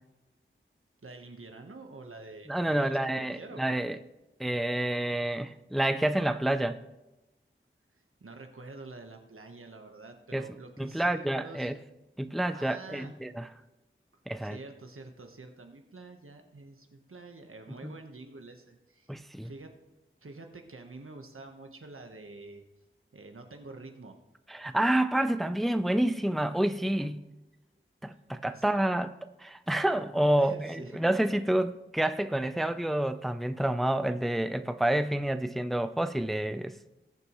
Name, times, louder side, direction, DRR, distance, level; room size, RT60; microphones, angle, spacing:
voice 1, 1.0-3.8 8.2-11.7 12.5-13.1 14.4-19.1 19.4-19.8 20.2-22.6 23.1-24.2 28.5-28.7 30.4-31.0, right 3 dB, 85° right, 1.2 m, -47 dB
voice 2, 2.5-4.0 4.4-6.8 10.3-10.5 10.8-11.8 12.2-13.4 14.3-14.6 17.8-17.9 19.1-19.5 24.5-27.2 28.0-29.1 29.4-36.7, right 1 dB, ahead, 0.5 m, -28 dB
20.0 x 6.8 x 3.1 m
wide cardioid pair, 45°, 21 cm